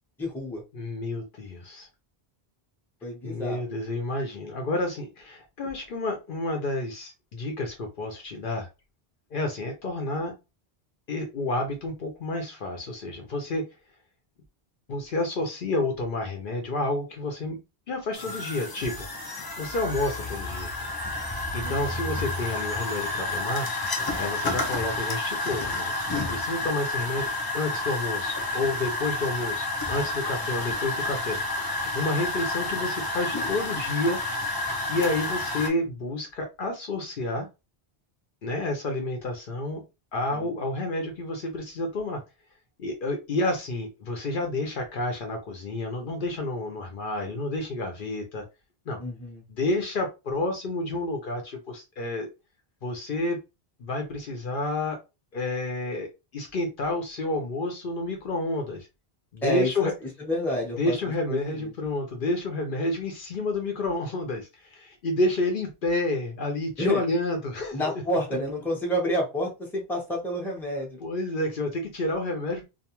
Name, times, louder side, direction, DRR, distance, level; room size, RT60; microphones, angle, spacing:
voice 1, 0.2-0.6 3.0-3.7 21.6-22.0 40.3-40.5 49.0-49.4 59.4-61.0 61.3-61.7 66.8-67.0 67.7-71.0, equal, ahead, -1 dB, 0.7 m, -29 dB
voice 2, 0.7-1.9 3.2-8.7 9.3-10.4 11.1-13.7 14.9-17.6 17.9-19.1 19.6-20.7 21.5-23.7 24.2-31.4 31.8-34.2 34.9-37.5 38.4-39.8 40.1-42.2 42.8-48.4 48.9-49.0 49.5-52.3 52.8-53.4 53.8-55.0 55.3-58.9 59.3-59.9 60.8-67.9 71.0-72.6, left 2 dB, 60° left, 3 dB, 0.8 m, -30 dB
sound 1, 18.1-35.7, left 2 dB, 35° left, 0.4 m, -30 dB
2.4 x 2.3 x 2.9 m, 0.26 s
omnidirectional pair, 1.0 m